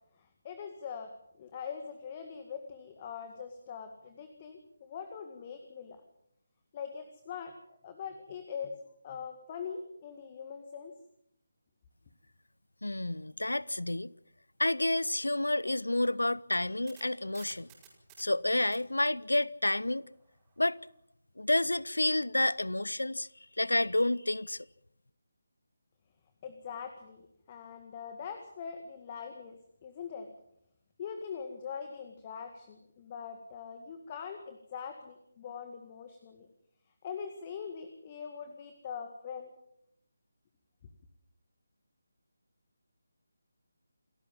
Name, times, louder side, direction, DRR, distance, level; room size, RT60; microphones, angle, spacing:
voice 1, 0.2-1.1 1.4-6.0 6.7-8.8 9.0-10.9 26.4-27.2 27.5-30.3 31.0-36.5 37.0-39.5, left 6 dB, 25° left, 2.0 m, -42 dB
voice 2, 12.8-14.1 14.6-17.7 18.2-20.1 20.6-20.8 21.4-23.3 23.6-24.7, left 1 dB, 75° left, 0.8 m, -29 dB
sound 1, 16.5-20.7, right 8 dB, 15° right, 5.3 m, -59 dB
28.0 x 14.5 x 7.5 m
figure-of-eight pair, 155°, 0 cm